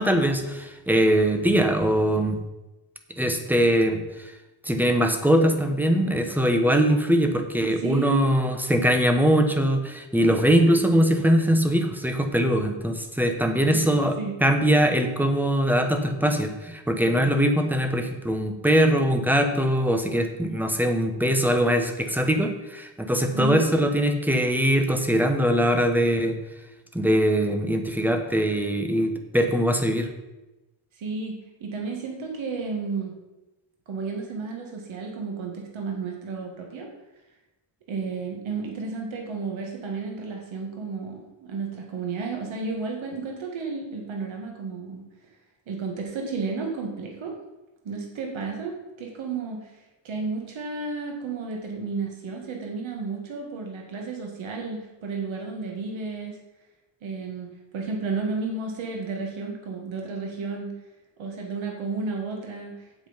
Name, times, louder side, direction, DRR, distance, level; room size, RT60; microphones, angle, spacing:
voice 1, 0.0-2.4 3.2-4.3 4.6-26.4 26.9-30.1, equal, 5° right, 5 dB, 1.0 m, -22 dB
voice 2, 7.7-8.2 13.7-13.9 14.2-14.3 23.3-23.6 30.9-33.1 33.9-36.9 37.9-45.0 45.7-47.3 47.8-49.8 50.0-56.4 57.0-57.5 57.7-60.7 61.2-62.9, right 4 dB, 85° right, 1 dB, 1.9 m, -32 dB
8.1 x 7.7 x 5.2 m, 1.0 s
wide cardioid pair, 130°, 46 cm